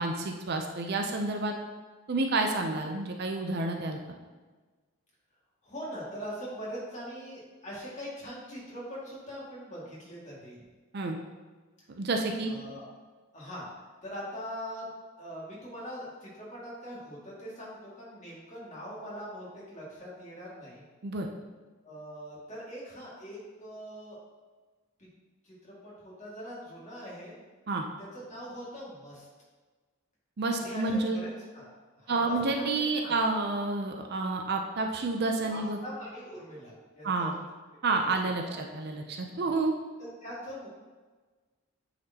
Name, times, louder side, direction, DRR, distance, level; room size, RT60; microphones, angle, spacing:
voice 1, 0.0-1.5 2.1-4.0 10.9-11.2 11.9-12.5 21.0-21.3 27.7-27.8 30.4-31.2 32.1-35.8 37.0-37.3 37.8-39.7, right 3 dB, 45° right, 3 dB, 0.5 m, -29 dB
voice 2, 5.6-10.6 12.4-12.8 13.3-13.7 14.0-14.9 15.2-20.8 21.8-24.2 25.0-25.1 25.4-27.4 28.0-29.3 30.6-31.7 31.9-32.7 33.0-33.1 35.5-37.3 38.2-38.6 39.4-39.6 40.0-40.7, equal, 30° left, -7 dB, 2.1 m, -42 dB
9.3 x 4.2 x 2.8 m, 1.3 s
head